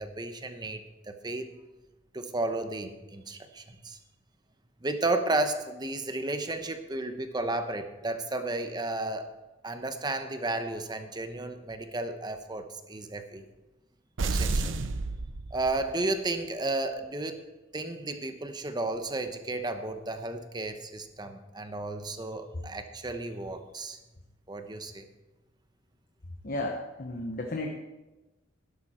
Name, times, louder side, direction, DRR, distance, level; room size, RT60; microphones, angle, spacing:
voice 1, 0.0-1.5 2.1-4.0 4.8-9.3 9.6-13.4 14.2-14.7 15.5-17.4 17.7-24.0 24.5-25.0, right 2 dB, 20° right, 8 dB, 0.9 m, -33 dB
sound 1, 14.2-16.1, right 3 dB, 85° right, 0.7 m, -30 dB
voice 2, 26.4-27.7, left 2 dB, 50° left, 2 dB, 1.1 m, -33 dB
12.0 x 11.0 x 4.4 m, 1.1 s
head